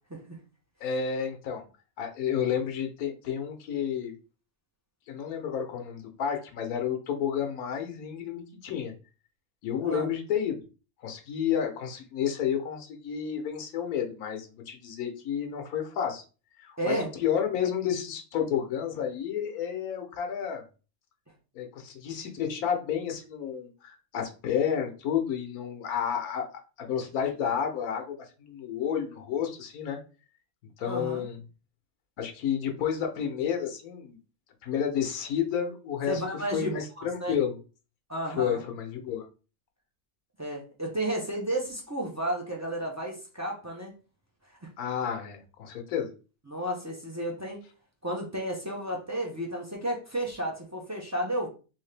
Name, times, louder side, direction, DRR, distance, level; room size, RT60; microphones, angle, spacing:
voice 1, 0.8-1.6 2.0-4.1 5.1-8.9 9.6-10.6 11.0-16.2 16.6-20.6 21.5-26.5 26.8-30.0 30.8-31.4 32.2-34.2 34.6-37.5 38.3-39.3 44.8-46.1, left 8 dB, 85° left, 4 dB, 1.2 m, -31 dB
voice 2, 16.8-17.1 30.8-31.2 36.1-37.3 38.1-38.6 40.4-43.9 44.6-44.7 46.5-47.6 48.0-51.5, right 1 dB, 25° right, -1 dB, 0.3 m, -32 dB
3.6 x 2.8 x 3.2 m, 0.34 s
omnidirectional pair, 1.5 m